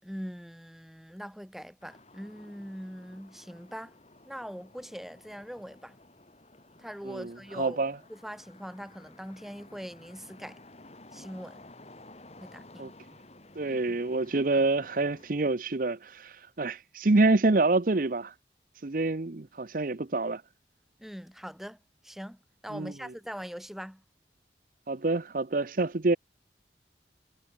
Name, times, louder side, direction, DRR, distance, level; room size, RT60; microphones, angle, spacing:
voice 1, 0.0-3.9 4.2-6.0 6.8-7.8 8.1-10.6 11.1-11.6 12.4-12.9 13.7-14.0 21.0-21.8 22.0-22.4 22.6-24.0, equal, ahead, 4.5 m, -42 dB
sound 1, 1.8-15.3, left 2 dB, 35° left, 4.4 m, -54 dB
voice 2, 7.1-8.0 12.8-12.9 13.6-18.3 18.8-20.4 22.7-22.9 24.9-26.2, right 2 dB, 50° right, 0.8 m, -27 dB
head